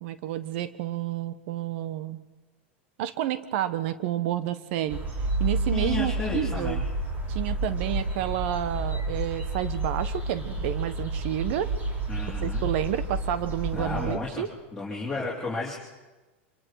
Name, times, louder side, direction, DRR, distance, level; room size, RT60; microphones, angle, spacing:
voice 1, 0.0-2.2 3.0-5.0 5.4-6.8 7.3-11.7 12.4-14.5, right 12 dB, 65° right, 13 dB, 1.1 m, -30 dB
sound 1, 4.9-14.2, right 2 dB, 25° right, 4.3 m, -30 dB
voice 2, 5.7-6.8 12.1-12.7 13.7-14.4 14.7-15.7, left 3 dB, 5° left, -6 dB, 3.7 m, -33 dB
25.5 x 21.5 x 4.7 m, 1.2 s
hypercardioid pair, 115°, 7 cm